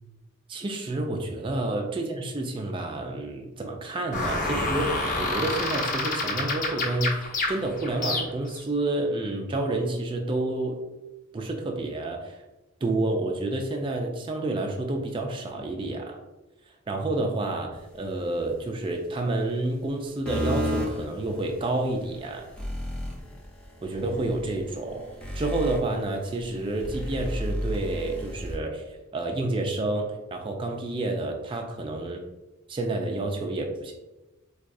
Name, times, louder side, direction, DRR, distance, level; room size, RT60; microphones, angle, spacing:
voice 1, 0.5-10.8 11.3-12.4 12.8-16.2 16.9-22.5 23.8-25.1 25.3-28.8 29.1-32.2 32.7-33.9, right 2 dB, 25° right, 2 dB, 0.3 m, -29 dB
sound 1, 4.1-8.6, left 2 dB, 40° left, 0.7 m, -28 dB
sound 2, 20.3-28.6, equal, 5° left, 0.7 m, -33 dB
4.6 x 2.3 x 2.5 m, 1.0 s
head